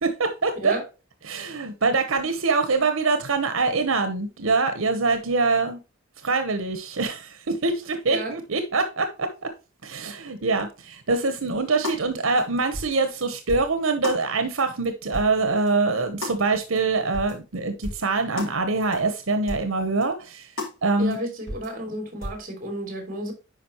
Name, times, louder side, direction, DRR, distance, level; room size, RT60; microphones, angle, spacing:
voice 1, 0.0-0.7 1.2-5.8 6.2-9.5 9.8-20.5 20.8-21.2, right 3 dB, 90° right, 1.0 m, -24 dB
voice 2, 8.0-8.4 21.0-23.3, right 1 dB, 45° right, 3.1 m, -32 dB
sound 1, 11.3-11.4 11.8-12.0 12.4-12.5 12.7-13.0 13.5-13.7 14.0-14.2 14.6-14.7 15.1-15.3 15.7-15.8 16.2-16.4 16.8-16.9 17.1-17.4 17.8-18.0 18.4-18.5 18.9-19.0 19.5-19.7 20.0-20.1 20.6-20.7 21.1-21.2 21.5-21.7 22.2-22.4, left 1 dB, 85° left, 3.8 m, -33 dB
10.0 x 5.0 x 3.0 m
head